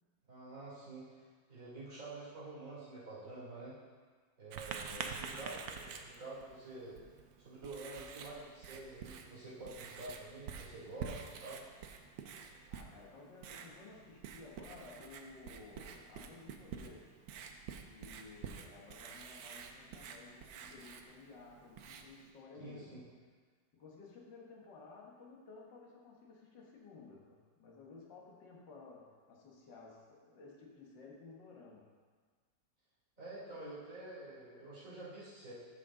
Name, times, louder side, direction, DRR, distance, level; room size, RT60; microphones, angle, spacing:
voice 1, 0.3-3.7 4.4-7.0 7.4-11.6 22.6-23.0 33.2-35.5, right 2 dB, 45° right, -9 dB, 3.4 m, -48 dB
Writing, 4.5-22.3, right 6 dB, 85° right, 1.4 m, -48 dB
voice 2, 4.9-5.3 12.7-17.1 17.9-23.0 23.7-31.9, left 4 dB, 70° left, -2 dB, 1.9 m, -55 dB
13.5 x 5.3 x 3.7 m, 1.5 s
omnidirectional pair, 2.0 m